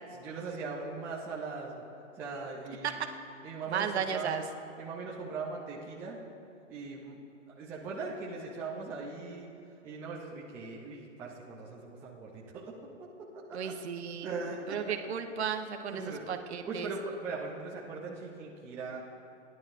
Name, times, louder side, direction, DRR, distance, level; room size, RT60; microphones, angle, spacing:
voice 1, 0.1-1.8 2.2-3.0 3.4-4.4 4.8-6.2 6.7-7.2 7.6-9.5 9.8-12.7 13.2-13.7 14.2-14.8 15.9-16.3 16.6-19.0, right 4 dB, 5° right, -4 dB, 0.4 m, -40 dB
voice 2, 3.7-4.4 13.5-14.3 14.7-16.9, right 7 dB, 55° right, 6 dB, 1.2 m, -34 dB
29.5 x 11.0 x 2.6 m, 2.6 s
hypercardioid pair, 135°, 38 cm